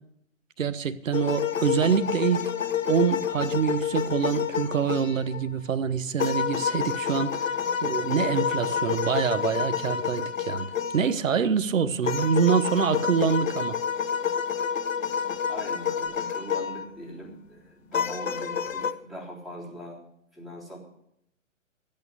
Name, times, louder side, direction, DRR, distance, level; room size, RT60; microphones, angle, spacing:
voice 1, 0.6-2.4 2.8-10.7 10.9-13.8, right 7 dB, 75° right, 1.1 m, -25 dB
sound 1, 1.1-5.4 6.2-11.1 12.0-16.9 17.9-18.9, left 7 dB, 75° left, 1.0 m, -28 dB
voice 2, 15.5-20.0 20.3-20.8, equal, ahead, 3.7 m, -41 dB
12.0 x 8.8 x 9.5 m
hypercardioid pair, 130°, 39 cm